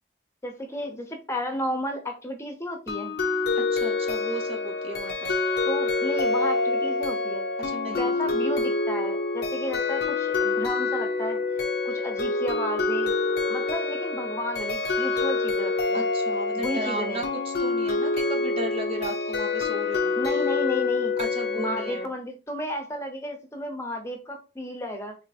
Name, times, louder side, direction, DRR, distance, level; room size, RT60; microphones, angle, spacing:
voice 1, 0.4-3.2 5.6-7.4 7.9-11.4 11.8-13.1 13.5-16.1 16.5-17.2 20.2-21.1 21.6-25.2, equal, 15° left, 4 dB, 0.6 m, -33 dB
sound 1, 2.9-22.1, left 3 dB, 60° left, 0.5 m, -26 dB
voice 2, 3.5-5.4 7.6-8.4 15.9-20.1 21.2-22.1, right 1 dB, 30° right, 3 dB, 0.6 m, -35 dB
3.8 x 2.5 x 2.4 m, 0.31 s
head